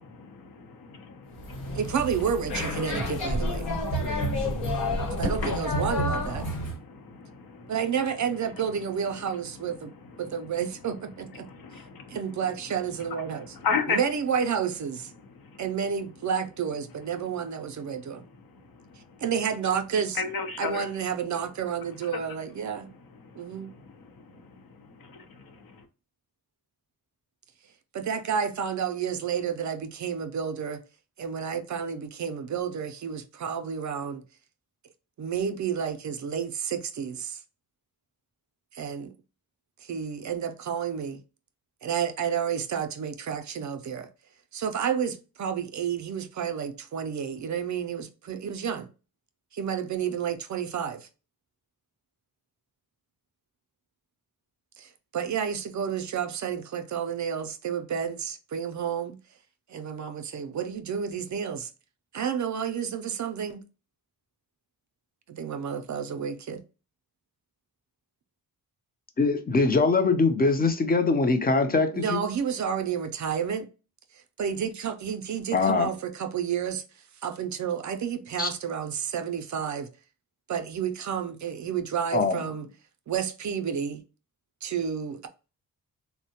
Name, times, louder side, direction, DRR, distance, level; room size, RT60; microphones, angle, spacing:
voice 1, 0.1-1.8 2.8-7.8 8.6-8.8 9.1-10.4 11.3-12.4 13.3-14.0 15.2-15.6 18.1-19.2 20.1-20.9 22.0-22.4 22.8-25.8, left 5 dB, 65° left, 0.7 m, -37 dB
sound 1, 1.3-6.8, left 1 dB, 90° left, 1.1 m, -29 dB
voice 2, 1.7-3.7 5.2-6.5 7.7-9.9 10.2-11.5 12.1-13.5 13.9-15.1 15.6-18.2 19.2-20.2 20.6-22.9 23.4-23.7 27.9-30.8 31.2-34.2 35.2-37.4 38.7-39.1 39.8-41.2 41.8-44.1 44.5-48.9 49.5-51.1 54.8-59.2 59.7-61.7 62.1-63.6 65.3-66.6 71.9-73.7 74.4-76.8 77.2-79.9 80.5-82.7 83.1-84.0 84.6-85.3, right 7 dB, 50° right, 0.4 m, -30 dB
voice 3, 69.2-72.2 75.5-75.9 78.4-78.5 82.1-82.4, left 3 dB, 25° left, 0.5 m, -23 dB
3.5 x 2.1 x 2.7 m
wide cardioid pair, 105°, 37 cm